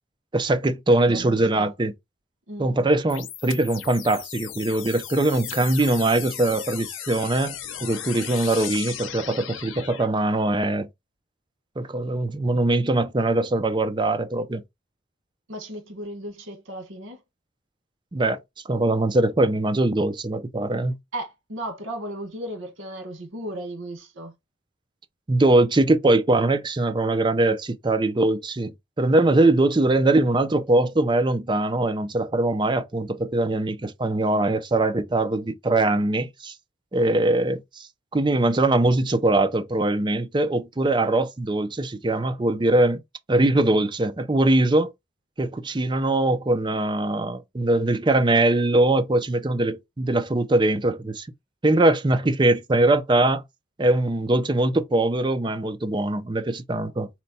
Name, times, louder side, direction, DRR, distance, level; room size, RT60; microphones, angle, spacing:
voice 1, 0.3-1.9 2.6-10.9 11.8-14.6 18.1-18.4 18.7-21.0 25.3-28.7 29.0-36.5 36.9-43.0 43.3-44.9 45.4-51.3 51.6-53.4 53.8-57.1, right 2 dB, 25° right, 0.5 m, -22 dB
voice 2, 1.1-1.7 2.5-2.7 15.5-17.2 21.1-24.3, right 1 dB, 90° right, 1.3 m, -35 dB
sound 1, 3.1-10.1, left 10 dB, 80° left, 0.7 m, -36 dB
4.3 x 2.2 x 4.0 m
head